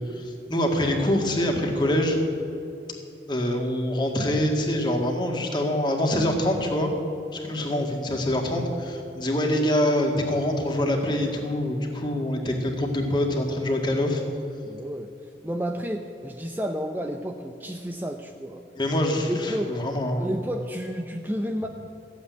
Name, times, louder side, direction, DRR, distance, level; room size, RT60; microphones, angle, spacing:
voice 1, 0.1-2.2 3.3-6.9 7.3-14.2 18.7-20.3, left 1 dB, 25° left, 2 dB, 1.8 m, -25 dB
voice 2, 14.7-15.1 15.4-18.6 19.3-19.8 20.2-21.7, equal, 10° right, 4 dB, 0.5 m, -31 dB
14.5 x 8.4 x 9.4 m, 2.7 s
head